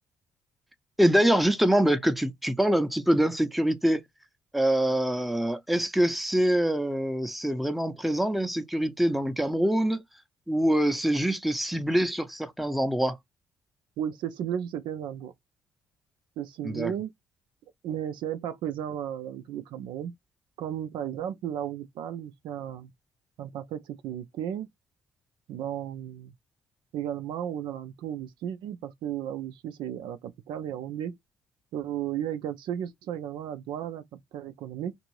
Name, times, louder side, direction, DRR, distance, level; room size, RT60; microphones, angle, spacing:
voice 1, 1.0-4.0 4.5-10.0 10.5-13.2 16.6-16.9, right 1 dB, ahead, 0.6 m, -24 dB
voice 2, 14.0-15.3 16.4-17.1 17.8-20.1 20.6-22.9 23.4-24.7 25.5-26.3 26.9-31.2 31.7-34.9, right 10 dB, 70° right, 0.4 m, -34 dB
2.6 x 2.6 x 3.0 m
hypercardioid pair, 50°, 8 cm